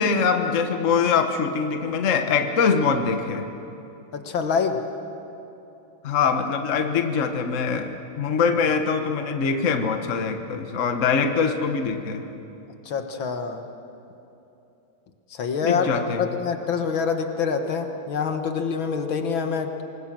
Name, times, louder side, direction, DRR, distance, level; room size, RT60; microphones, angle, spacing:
voice 1, 0.0-3.5 6.0-12.3 15.6-16.3, left 5 dB, 45° left, 6 dB, 1.3 m, -23 dB
voice 2, 4.1-4.8 12.9-13.6 15.3-15.9 16.2-19.8, left 6 dB, 70° left, 6 dB, 2.1 m, -26 dB
26.5 x 20.5 x 7.5 m, 2.9 s
omnidirectional pair, 2.3 m